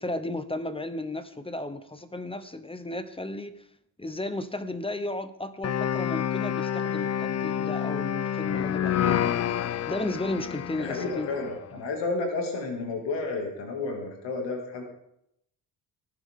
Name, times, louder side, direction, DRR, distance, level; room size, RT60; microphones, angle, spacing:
voice 1, 0.0-3.7 4.0-9.4 9.9-11.3, left 2 dB, 15° left, 11 dB, 0.8 m, -34 dB
sound 1, 5.6-11.6, left 9 dB, 40° left, 0.5 m, -28 dB
voice 2, 10.8-14.8, left 3 dB, 85° left, 1 dB, 2.4 m, -31 dB
19.0 x 7.3 x 3.7 m, 0.78 s
cardioid pair, 85°, 42 cm